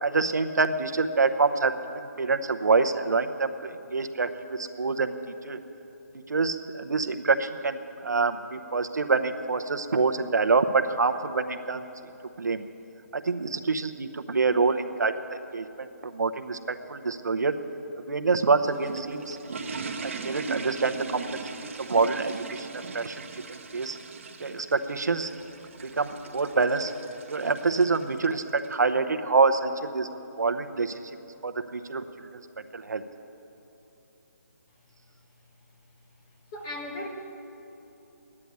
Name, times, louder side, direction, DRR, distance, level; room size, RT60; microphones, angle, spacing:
voice 1, 0.0-5.1 5.4-5.6 6.3-11.8 12.4-12.6 13.1-17.6 18.1-19.7 20.0-21.2 21.6-22.7 22.9-23.2 23.7-24.0 24.4-25.3 25.8-26.9 27.3-30.1 30.4-31.0 31.4-32.0 32.7-33.0, right 4 dB, 80° right, 8 dB, 0.9 m, -26 dB
sound 1, 18.6-28.7, right 4 dB, 45° right, 1.1 m, -39 dB
voice 2, 36.5-37.1, left 1 dB, 20° left, 1 dB, 1.4 m, -36 dB
13.0 x 9.9 x 9.5 m, 2.9 s
hypercardioid pair, 170°, 9 cm